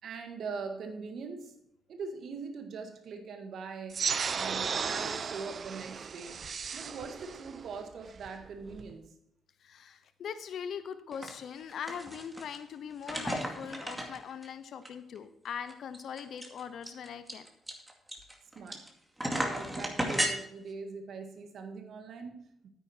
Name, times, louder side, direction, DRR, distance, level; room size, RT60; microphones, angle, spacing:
voice 1, 0.0-1.6 1.9-6.4 6.7-9.1 18.6-18.8 19.2-22.7, right 5 dB, 65° right, 6 dB, 1.7 m, -42 dB
sound 1, 3.9-8.9, right 6 dB, 50° right, 0.6 m, -35 dB
voice 2, 9.6-17.5, left 7 dB, 65° left, 12 dB, 0.7 m, -41 dB
sound 2, 11.1-11.3 11.6-12.6 13.0-14.5 14.9-15.0 15.2-15.3 15.7-18.9 19.2-20.3, right 1 dB, 10° right, 2.3 m, -34 dB
9.4 x 9.3 x 4.4 m, 0.78 s
supercardioid pair, 60°, 0 cm